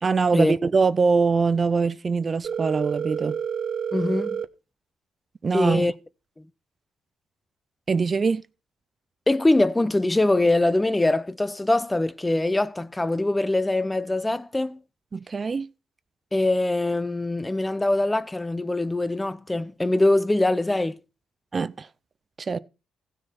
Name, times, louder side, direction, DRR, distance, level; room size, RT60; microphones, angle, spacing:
voice 1, 0.0-3.4 5.4-5.9 7.9-8.4 15.1-15.7 21.5-21.9 22.4-22.6, right 4 dB, 35° right, 0.5 m, -23 dB
Telephone, 2.4-4.4, right 7 dB, 55° right, 0.9 m, -29 dB
voice 2, 3.9-4.4 5.5-5.9 9.3-14.8 16.3-21.0, left 2 dB, 15° left, 0.6 m, -23 dB
15.5 x 6.6 x 4.3 m
cardioid pair, 90°, 0 cm